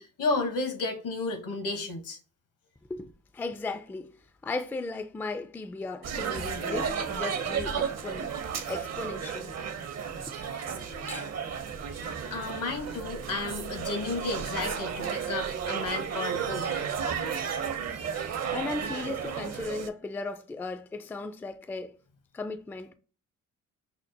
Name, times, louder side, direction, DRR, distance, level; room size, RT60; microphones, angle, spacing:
voice 1, 0.0-2.2 11.2-11.3 12.3-17.2, left 3 dB, 70° left, 1.1 m, -33 dB
voice 2, 2.9-9.6 10.3-10.4 11.1-11.3 18.5-22.0 22.3-22.9, left 3 dB, 5° left, 0.3 m, -36 dB
sound 1, 6.0-19.9, right 7 dB, 50° right, 0.7 m, -33 dB
5.7 x 2.0 x 2.6 m
supercardioid pair, 50°, 34 cm